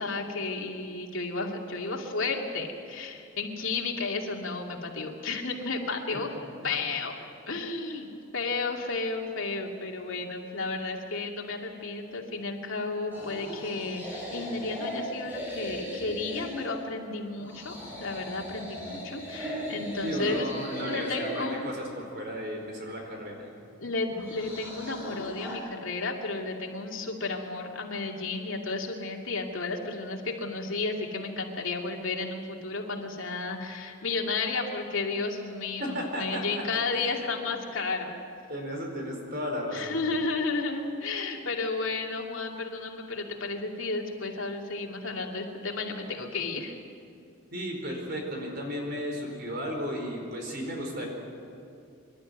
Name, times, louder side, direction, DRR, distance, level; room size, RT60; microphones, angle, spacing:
voice 1, 0.0-6.3 6.6-8.1 8.3-20.5 20.8-21.7 23.8-38.2 39.7-46.8, left 3 dB, 75° left, 1 dB, 2.5 m, -33 dB
sound 1, 13.1-16.7 17.4-21.6 24.1-25.6, equal, 10° right, 6.0 m, -38 dB
voice 2, 20.0-23.5 35.8-37.6 38.5-40.0 47.5-51.1, equal, 50° right, 1 dB, 4.6 m, -34 dB
26.0 x 12.0 x 9.4 m, 2.4 s
head